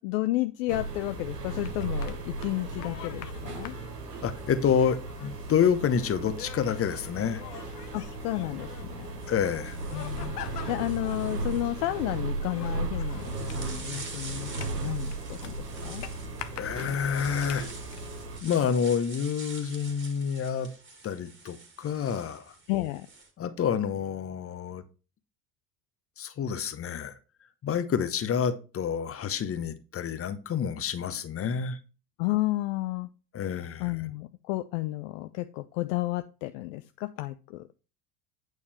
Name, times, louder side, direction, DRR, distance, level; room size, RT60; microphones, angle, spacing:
voice 1, 0.0-3.8 7.9-9.1 9.9-10.4 10.7-15.5 15.8-16.1 22.7-23.1 32.2-33.1 33.8-37.7, left 18 dB, 55° left, 0.6 m, -32 dB
sound 1, 0.7-18.4, right 2 dB, 80° right, 1.4 m, -36 dB
sound 2, 1.5-18.1, left 11 dB, 75° left, 0.9 m, -47 dB
voice 2, 4.2-7.4 9.3-9.8 16.5-17.7 18.4-20.7 21.0-22.5 23.4-24.8 26.2-27.2 27.6-31.8 33.3-33.9, left 7 dB, 30° left, 1.0 m, -28 dB
sound 3, 5.2-6.7 8.0-8.2 8.9-23.3, right 3 dB, 25° right, 2.0 m, -48 dB
8.5 x 4.8 x 4.3 m
figure-of-eight pair, 65°, 47 cm